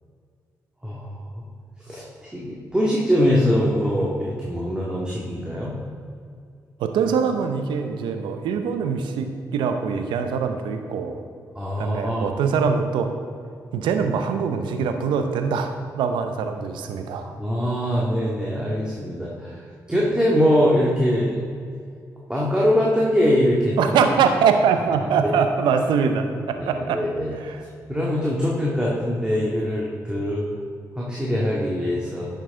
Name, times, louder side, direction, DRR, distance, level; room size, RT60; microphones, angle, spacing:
voice 1, 0.8-1.2 1.9-5.7 11.6-12.3 17.4-19.6 19.9-21.4 22.3-23.8 26.6-27.4 27.9-30.4 31.0-32.3, equal, 10° right, -5 dB, 2.0 m, -22 dB
voice 2, 6.8-11.2 11.8-13.1 13.7-17.3 23.8-27.0 27.4-27.6, right 6 dB, 80° right, 7 dB, 0.7 m, -23 dB
10.5 x 6.5 x 3.7 m, 2.2 s
hypercardioid pair, 40°, 8 cm